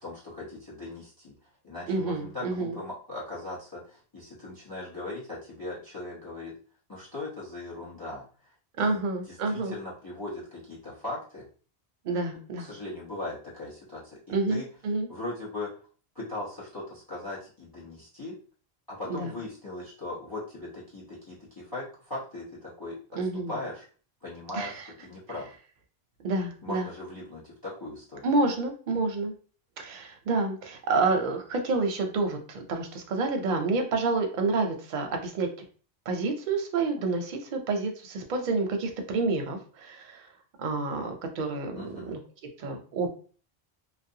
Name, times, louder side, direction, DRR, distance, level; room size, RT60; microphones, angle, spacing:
voice 1, 0.0-1.3 1.6-6.5 6.9-8.2 8.8-11.4 12.6-14.7 15.1-15.7 16.1-18.4 18.9-23.0 23.5-23.9 24.2-25.5 26.6-28.3 41.7-42.2, left 2 dB, 25° left, -6 dB, 0.7 m, -39 dB
voice 2, 1.9-2.8 8.8-9.7 12.0-12.7 14.3-15.1 19.1-19.3 23.1-23.6 24.5-24.8 26.2-26.9 28.2-29.3 29.8-35.5 36.1-40.2 40.6-42.2 42.6-43.1, right 3 dB, 55° right, 4 dB, 0.6 m, -29 dB
2.4 x 2.0 x 2.6 m, 0.40 s
omnidirectional pair, 1.1 m